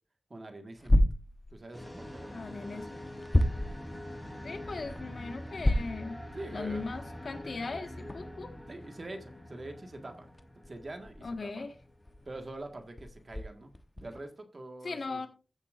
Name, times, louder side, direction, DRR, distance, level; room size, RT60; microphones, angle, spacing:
voice 1, 0.3-1.1 1.5-2.8 6.3-6.9 8.7-10.3 10.7-11.6 12.3-15.3, right 2 dB, 45° right, 5 dB, 1.7 m, -44 dB
sound 1, 0.8-1.9 2.5-4.0 4.5-6.1 6.5-6.6 7.2-7.3 8.0-14.2, left 1 dB, 20° left, 0.9 m, -31 dB
sound 2, 1.7-12.5, left 1 dB, 5° left, 3.4 m, -45 dB
voice 2, 2.3-3.1 4.4-6.2 6.5-8.5 11.2-11.7 14.8-15.3, left 3 dB, 65° left, 6 dB, 1.5 m, -39 dB
14.5 x 7.2 x 2.6 m, 0.34 s
wide cardioid pair, 90°, 0 cm